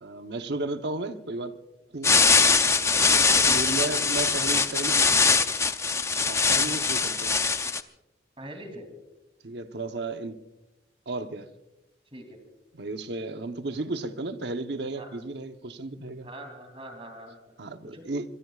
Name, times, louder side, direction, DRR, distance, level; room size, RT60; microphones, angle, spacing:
voice 1, 0.0-1.5 1.9-2.2 3.4-5.1 6.2-7.4 9.4-10.4 11.1-11.5 12.7-16.3 17.6-18.2, right 2 dB, 70° right, 0.9 m, -34 dB
sound 1, 2.0-7.8, left 4 dB, 15° left, 0.5 m, -22 dB
voice 2, 2.9-3.9 8.4-8.9 12.1-12.4 15.0-15.1 16.2-17.5 17.8-18.0, equal, 30° right, 2.9 m, -42 dB
24.5 x 22.5 x 2.4 m
head